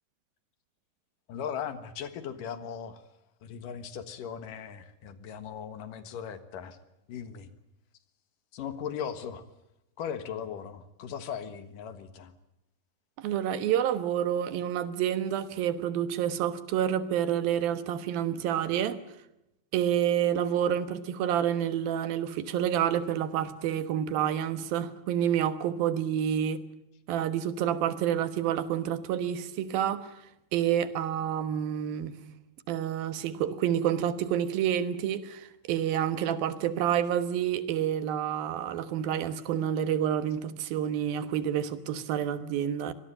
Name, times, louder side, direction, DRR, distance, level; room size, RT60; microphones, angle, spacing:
voice 1, 1.3-3.0 3.4-6.8 7.1-7.5 8.5-9.4 10.0-12.3, left 8 dB, 70° left, 3.1 m, -38 dB
voice 2, 13.2-19.0 19.7-26.6 27.1-30.1 30.5-32.1 32.7-42.9, right 10 dB, 90° right, 3.2 m, -28 dB
24.5 x 19.5 x 8.9 m
omnidirectional pair, 4.0 m